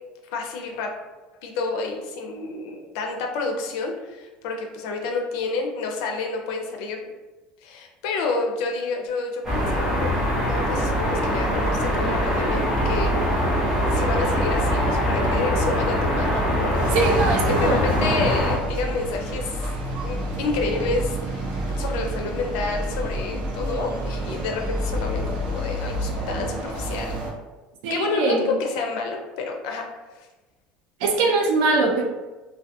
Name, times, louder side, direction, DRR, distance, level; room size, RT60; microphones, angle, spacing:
voice 1, 0.3-0.9 1.4-7.1 7.6-13.4 13.9-16.8 17.1-19.6 20.0-21.5 21.8-27.2 27.9-29.9 30.1-30.3, left 4 dB, 80° left, 2 dB, 0.5 m, -29 dB
sound 1, 9.4-18.6, equal, 15° right, 0.8 m, -22 dB
sound 2, 16.7-27.3, right 1 dB, 55° right, 0.8 m, -29 dB
voice 2, 16.9-17.8 27.8-28.5 31.0-32.0, right 3 dB, 90° right, 2 dB, 0.5 m, -22 dB
2.3 x 2.2 x 2.7 m, 1.1 s
cardioid pair, 170°, 4 cm